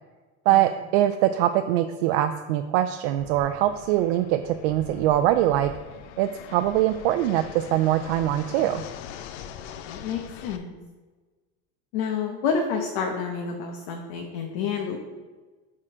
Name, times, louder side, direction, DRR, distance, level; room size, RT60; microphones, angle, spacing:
voice 1, 0.5-5.7 6.2-8.8, right 13 dB, 70° right, 8 dB, 0.5 m, -23 dB
Fixed-wing aircraft airplane, 3.2-10.6, left 9 dB, 80° left, 0.6 m, -42 dB
voice 2, 9.9-10.7 11.9-15.0, left 6 dB, 60° left, 2 dB, 0.9 m, -29 dB
8.7 x 3.8 x 4.9 m, 1.3 s
cardioid pair, 175°, 33 cm